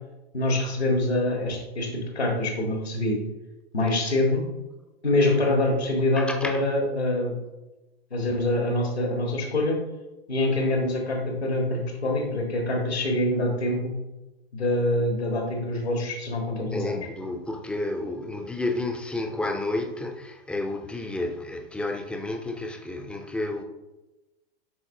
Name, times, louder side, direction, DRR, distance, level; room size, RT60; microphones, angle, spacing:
voice 1, 0.3-1.9 2.1-3.2 3.7-4.4 5.0-7.4 8.1-9.8 10.3-13.9 14.5-17.0, left 1 dB, 85° left, 1.5 m, -25 dB
voice 2, 6.2-6.6 16.7-23.6, left 2 dB, 5° left, 0.4 m, -31 dB
11.0 x 4.1 x 2.7 m
figure-of-eight pair, 105°, 31 cm